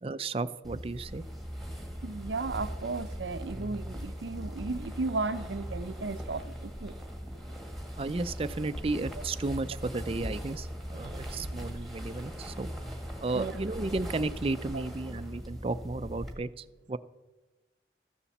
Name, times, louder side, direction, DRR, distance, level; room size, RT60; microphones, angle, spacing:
voice 1, 0.0-1.2 8.0-12.7 13.2-17.0, right 3 dB, 30° right, 0.4 m, -33 dB
sound 1, 0.6-16.3, equal, ahead, 1.6 m, -40 dB
voice 2, 2.0-6.9 10.9-11.7 13.3-13.5 14.7-14.8, right 3 dB, 80° right, 0.6 m, -35 dB
14.0 x 7.0 x 7.2 m
head